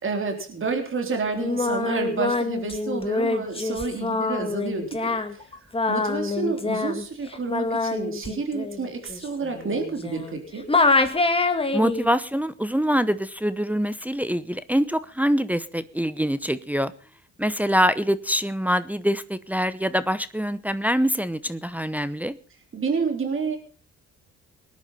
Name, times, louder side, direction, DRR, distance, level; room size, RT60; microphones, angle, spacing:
voice 1, 0.0-5.4 5.9-10.7 22.7-23.6, right 4 dB, 45° right, 3.8 m, -29 dB
Singing, 1.3-10.4 10.7-12.1, left 3 dB, 20° left, 2.2 m, -25 dB
voice 2, 11.7-16.9 17.4-22.4, equal, 5° right, 0.9 m, -24 dB
19.0 x 10.5 x 5.7 m
cardioid pair, 90°, 30 cm